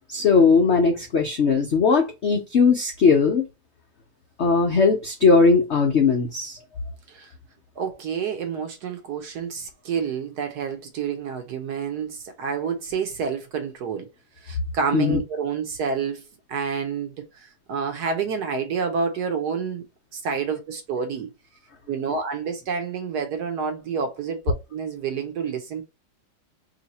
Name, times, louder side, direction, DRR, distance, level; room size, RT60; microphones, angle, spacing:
voice 1, 0.1-3.4 4.4-6.6 14.9-15.2, left 4 dB, 80° left, 0.6 m, -19 dB
voice 2, 7.8-14.1 14.4-19.8 20.1-21.3 21.9-25.8, right 6 dB, 65° right, 1.1 m, -29 dB
3.1 x 2.8 x 4.0 m
omnidirectional pair, 2.1 m